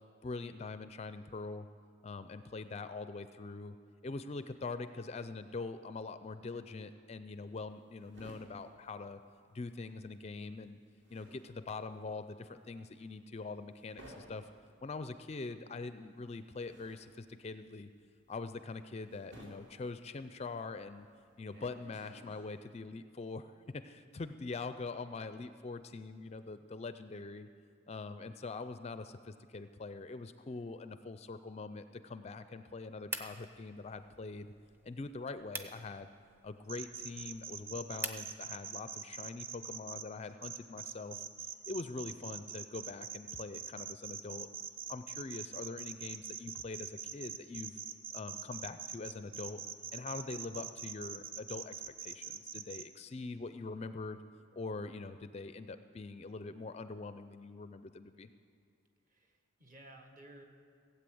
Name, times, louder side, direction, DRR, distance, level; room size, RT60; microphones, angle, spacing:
voice 1, 0.2-1.7 2.0-3.8 4.0-9.2 9.5-10.8 11.1-14.5 14.8-17.9 18.3-21.1 21.4-27.5 27.9-34.5 34.8-36.1 36.4-41.2 41.7-44.5 44.9-47.8 48.1-49.6 49.9-51.7 52.0-54.2 54.5-58.3, left 3 dB, 30° left, 11 dB, 0.4 m, -43 dB
sound 1, 7.3-9.9 10.1-22.7, right 1 dB, 55° right, 3.1 m, -58 dB
sound 2, 33.1-38.3, right 1 dB, 10° right, 0.6 m, -46 dB
sound 3, 36.7-40.0 40.4-52.8, right 7 dB, 75° right, 0.7 m, -43 dB
voice 2, 59.1-60.4, right 1 dB, 40° right, 4 dB, 1.4 m, -56 dB
16.5 x 8.4 x 7.7 m, 2.3 s
head